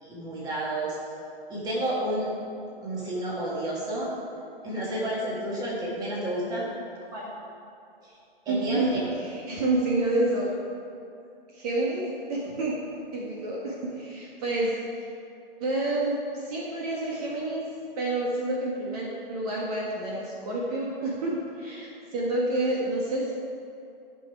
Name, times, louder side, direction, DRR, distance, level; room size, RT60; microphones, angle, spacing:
voice 1, 0.0-1.0 1.5-2.3 2.8-4.1 4.6-6.7 8.0-8.1 8.5-9.1, right 1 dB, 15° right, -6 dB, 2.1 m, -30 dB
voice 2, 8.5-10.5 11.5-12.0 12.3-12.7 13.1-14.7 15.6-17.7 18.0-23.3, right 2 dB, 40° right, -4 dB, 1.6 m, -28 dB
13.5 x 5.6 x 4.8 m, 2.6 s
hypercardioid pair, 150°, 30 cm